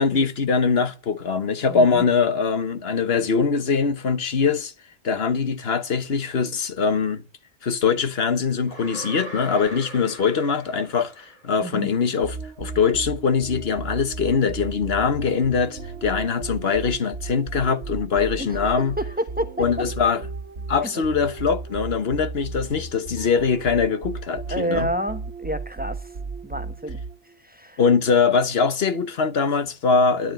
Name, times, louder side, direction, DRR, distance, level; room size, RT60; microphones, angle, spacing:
voice 1, 0.0-4.7 5.0-7.2 7.6-18.9 19.6-20.2 20.7-24.9 27.8-30.3, left 5 dB, 60° left, 1.4 m, -22 dB
voice 2, 1.7-2.0 11.6-11.9 18.4-19.9 20.8-20.9 24.5-26.1 26.4-27.0 27.4-27.8, right 1 dB, 10° right, 1.1 m, -29 dB
sound 1, 8.7-11.8, right 2 dB, 40° left, 3.2 m, -40 dB
sound 2, 12.2-27.4, right 3 dB, 70° right, 1.6 m, -35 dB
12.5 x 9.1 x 7.3 m
omnidirectional pair, 1.2 m